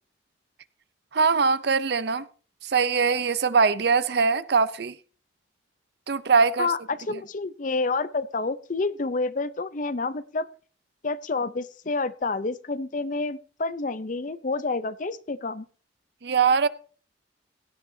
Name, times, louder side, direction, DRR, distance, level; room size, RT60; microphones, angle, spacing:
voice 1, 1.1-2.3 2.6-4.9 6.1-6.7 7.1-7.2 16.2-16.7, right 5 dB, 60° right, 0.6 m, -22 dB
voice 2, 6.6-10.5 11.0-15.6, left 3 dB, 45° left, 0.6 m, -29 dB
17.0 x 11.0 x 2.7 m
head